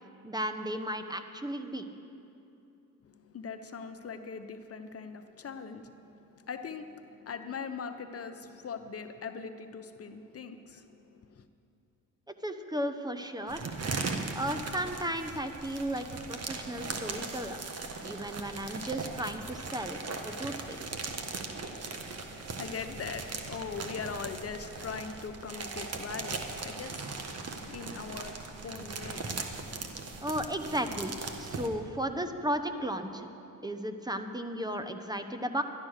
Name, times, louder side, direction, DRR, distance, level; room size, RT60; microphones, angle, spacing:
voice 1, 0.2-1.9 12.3-13.7 14.3-17.6 18.0-20.0 20.2-20.8 30.2-33.3 33.6-35.6, right 1 dB, 10° right, 7 dB, 0.9 m, -34 dB
voice 2, 3.0-11.5 22.0-27.1 27.7-29.4, left 5 dB, 45° left, 9 dB, 0.8 m, -41 dB
sound 1, 13.5-31.7, right 4 dB, 45° right, 1.5 m, -39 dB
12.0 x 11.5 x 6.5 m, 2.8 s
supercardioid pair, 65°, 34 cm